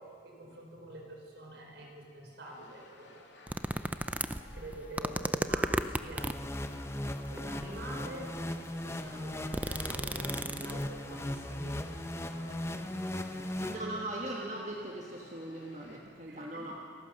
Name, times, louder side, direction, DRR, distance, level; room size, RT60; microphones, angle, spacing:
voice 1, 0.2-3.2 4.5-6.4 7.3-8.3 8.8-11.8 12.8-12.9 13.3-14.1 16.3-16.6, right 1 dB, 65° right, 0 dB, 5.0 m, -46 dB
sound 1, 2.4-16.0, left 2 dB, 70° left, 2.8 m, -57 dB
sound 2, 3.5-6.5 7.3-7.9 8.4-8.5 8.8-11.0 11.3-11.4, right 1 dB, 10° right, 0.4 m, -34 dB
sound 3, 6.2-14.3, left 1 dB, 15° left, 0.8 m, -38 dB
voice 2, 13.6-16.8, right 1 dB, 40° right, -1 dB, 1.5 m, -40 dB
28.5 x 15.0 x 6.5 m, 2.2 s
head